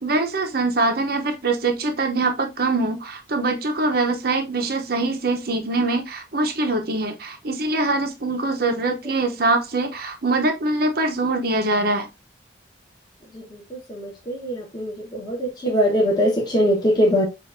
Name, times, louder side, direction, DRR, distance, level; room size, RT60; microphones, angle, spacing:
voice 1, 0.0-12.1, right 2 dB, 50° right, 0.8 m, -23 dB
voice 2, 13.9-17.2, equal, 20° left, 1.2 m, -21 dB
7.1 x 2.5 x 2.6 m
head